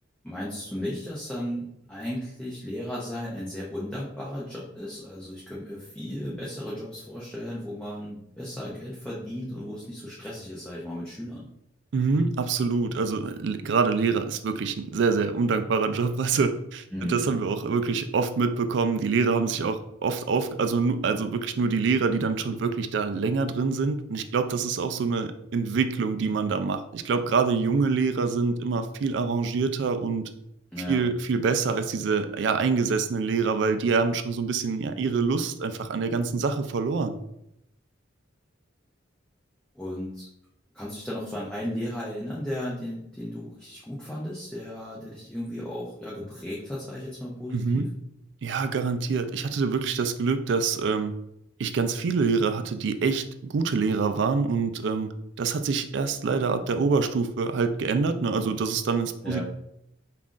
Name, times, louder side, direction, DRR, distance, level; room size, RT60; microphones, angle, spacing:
voice 1, 0.2-11.5 16.9-17.4 30.7-31.0 39.7-40.3 40.7-47.9 59.2-59.4, left 1 dB, 5° left, -7 dB, 0.5 m, -35 dB
voice 2, 11.9-30.2 30.9-37.2 47.5-47.9 48.4-51.1 51.6-55.1 55.4-59.4, right 4 dB, 60° right, 9 dB, 0.3 m, -25 dB
5.4 x 2.4 x 2.4 m, 0.79 s
head